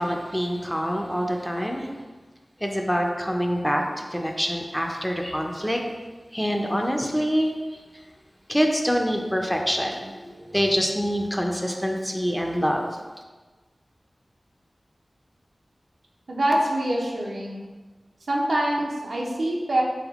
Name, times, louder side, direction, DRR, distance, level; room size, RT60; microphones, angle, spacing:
voice 1, 0.0-1.9 2.6-5.8 6.3-7.5 8.5-12.9, equal, 5° left, 1 dB, 0.5 m, -25 dB
voice 2, 16.3-17.7 18.3-19.8, right 1 dB, 80° right, -2 dB, 0.7 m, -25 dB
3.7 x 3.5 x 3.6 m, 1.3 s
wide cardioid pair, 45°, 0 cm